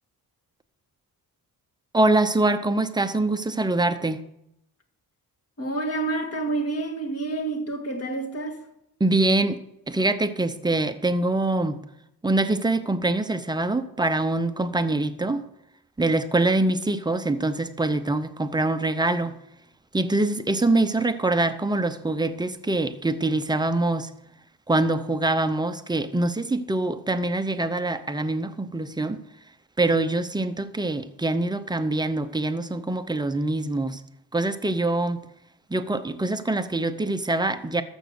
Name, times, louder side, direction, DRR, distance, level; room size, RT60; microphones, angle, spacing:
voice 1, 1.9-4.2 9.0-9.6 9.9-11.8 12.2-15.4 16.0-19.4 19.9-24.1 24.7-29.2 29.8-34.0 34.3-35.3 35.7-37.8, right 2 dB, 10° right, 0.7 m, -24 dB
voice 2, 5.6-8.6, right 2 dB, 40° left, 1.9 m, -28 dB
14.0 x 6.2 x 6.4 m
cardioid pair, 125°, 38 cm